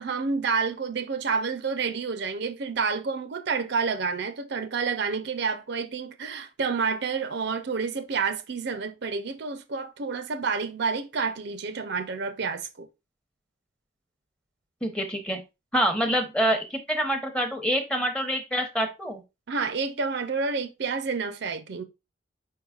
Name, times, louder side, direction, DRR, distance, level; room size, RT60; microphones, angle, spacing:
voice 1, 0.0-12.9 19.5-21.8, right 5 dB, 60° right, 0.5 m, -29 dB
voice 2, 14.8-15.4 15.7-19.2, equal, 5° left, 0.8 m, -26 dB
4.7 x 4.6 x 2.3 m
head